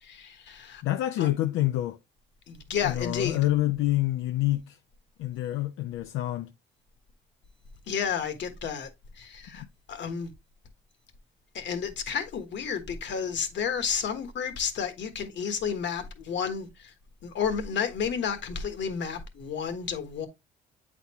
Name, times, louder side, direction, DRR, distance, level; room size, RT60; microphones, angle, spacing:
voice 1, 0.0-0.8 1.2-1.3 2.5-3.4 7.9-8.9 9.2-10.3 11.5-16.9 17.2-20.3, left 7 dB, 65° left, 1.4 m, -31 dB
voice 2, 0.8-2.0 2.8-4.8 5.2-6.5, left 15 dB, 90° left, 0.5 m, -27 dB
8.2 x 4.2 x 2.9 m
cardioid pair, 90°, 20 cm